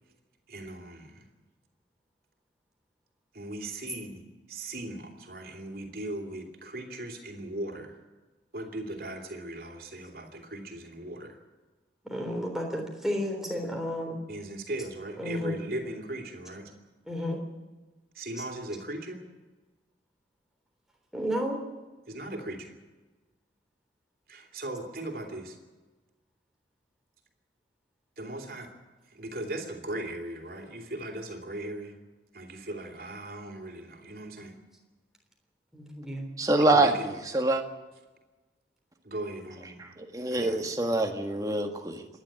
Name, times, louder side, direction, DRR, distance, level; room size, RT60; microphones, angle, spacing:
voice 1, 0.5-1.3 3.3-4.2 4.5-8.0 8.5-11.4 14.3-16.7 18.1-19.2 22.1-22.7 24.3-25.6 28.2-28.7 29.1-32.0 32.3-34.6 36.6-37.1 39.0-39.9 40.3-40.6, right 1 dB, 55° right, 4 dB, 3.1 m, -38 dB
voice 2, 12.1-14.2 15.2-15.6 17.1-17.4 21.1-21.6 35.7-36.3, equal, ahead, 0 dB, 3.6 m, -32 dB
voice 3, 36.4-37.6 39.8-42.1, right 2 dB, 20° right, 4 dB, 1.6 m, -26 dB
26.5 x 11.0 x 9.0 m, 1.2 s
head